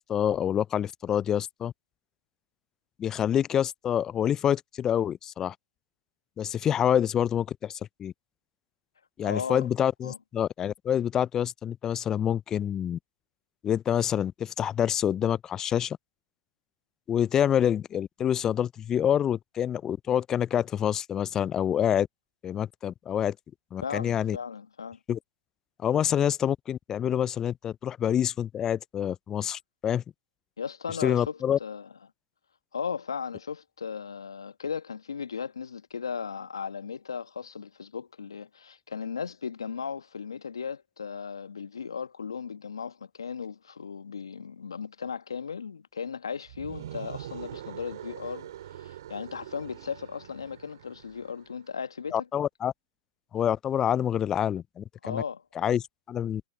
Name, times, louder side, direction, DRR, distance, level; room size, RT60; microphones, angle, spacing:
voice 1, 0.0-1.7 3.0-5.5 6.4-8.1 9.2-13.0 13.6-16.0 17.1-22.1 22.4-23.4 23.7-24.4 25.1-25.2 25.8-30.0 31.0-31.6 52.1-52.7 53.3-55.2 55.6-56.4, left 9 dB, 20° left, 0.4 m, -27 dB
voice 2, 9.2-9.7 10.0-10.2 23.8-25.0 30.6-31.9 32.7-52.3 55.0-55.4, left 6 dB, 80° left, 1.2 m, -36 dB
sound 1, 46.5-51.5, right 11 dB, 60° right, 2.7 m, -43 dB
hypercardioid pair, 115°, 2 cm